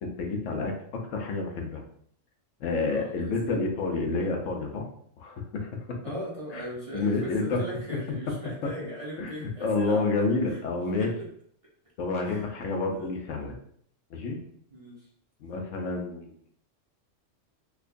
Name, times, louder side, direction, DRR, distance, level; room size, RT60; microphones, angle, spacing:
voice 1, 0.0-1.8 2.6-4.8 5.2-6.0 6.5-6.6 6.9-7.6 9.2-11.1 12.0-13.5 14.1-14.4 15.4-16.3, left 3 dB, 75° left, 2 dB, 1.0 m, -29 dB
voice 2, 2.9-3.6 6.0-10.1 10.5-10.6 11.0-11.3 12.2-12.4 12.9-13.2 14.7-15.1, right 1 dB, 30° right, -6 dB, 0.7 m, -39 dB
4.5 x 2.3 x 2.5 m, 0.64 s
omnidirectional pair, 1.3 m